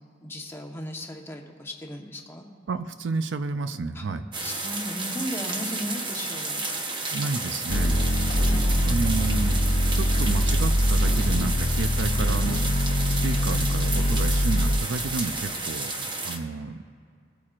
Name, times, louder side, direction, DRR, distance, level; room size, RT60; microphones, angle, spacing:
voice 1, 0.2-2.4 3.9-4.0 4.4-6.6 8.2-9.2, equal, 15° left, 1 dB, 1.1 m, -36 dB
voice 2, 2.7-4.3 7.1-8.0 8.8-9.6 9.9-12.8 13.1-16.8, right 4 dB, 70° right, 10 dB, 0.5 m, -31 dB
sound 1, 4.3-16.4, right 3 dB, 25° right, 0.9 m, -32 dB
sound 2, 7.7-14.8, equal, 65° left, 0.8 m, -23 dB
20.0 x 8.5 x 2.5 m, 2.3 s
head